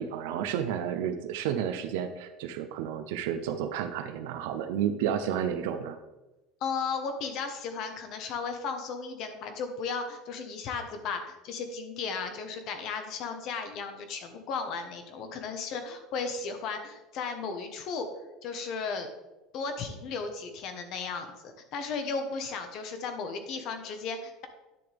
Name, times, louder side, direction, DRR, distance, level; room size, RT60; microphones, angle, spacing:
voice 1, 0.0-6.0, right 9 dB, 85° right, 7 dB, 0.6 m, -31 dB
voice 2, 6.6-18.1 18.4-19.1 19.5-24.5, left 5 dB, 50° left, 7 dB, 1.2 m, -35 dB
10.0 x 6.8 x 3.5 m, 1.0 s
cardioid pair, 145°, 0 cm